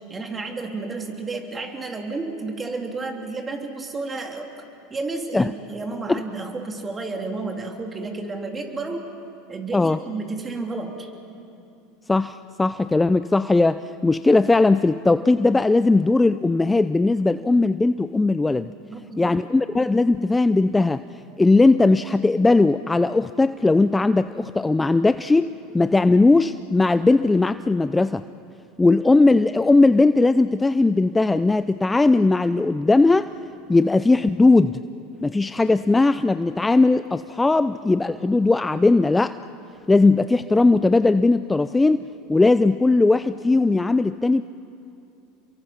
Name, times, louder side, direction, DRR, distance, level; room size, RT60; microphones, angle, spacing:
voice 1, 0.1-4.5 4.9-9.1 9.5-11.1 18.8-19.3, right 3 dB, 25° right, 3 dB, 3.1 m, -31 dB
voice 2, 12.1-18.7 19.2-21.0 21.4-28.2 28.8-33.3 33.7-34.8 35.2-39.3 39.9-44.4, left 3 dB, 15° left, 13 dB, 0.5 m, -18 dB
29.0 x 23.0 x 5.9 m, 2.6 s
hypercardioid pair, 95°, 0 cm